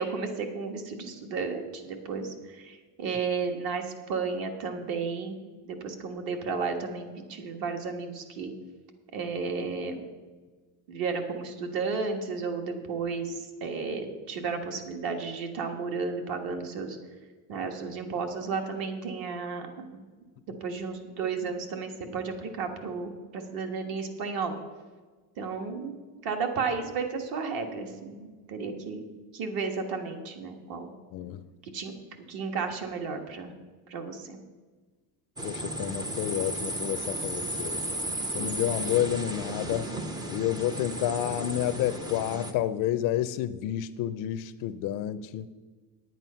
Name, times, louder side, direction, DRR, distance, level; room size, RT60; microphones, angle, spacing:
voice 1, 0.0-5.4 5.8-8.5 9.1-10.0 10.9-17.0 17.5-20.0 20.6-24.6 25.4-26.0 26.2-29.1 29.3-30.9 31.6-31.9 32.3-33.5 33.9-34.4, right 5 dB, 55° right, 5 dB, 1.5 m, -33 dB
voice 2, 35.4-37.8 38.3-39.9 40.3-45.5, left 12 dB, 50° left, 14 dB, 0.4 m, -30 dB
sound 1, 35.4-42.5, right 1 dB, 10° right, 0.4 m, -34 dB
9.4 x 9.2 x 5.6 m, 1.3 s
cardioid pair, 180°, 41 cm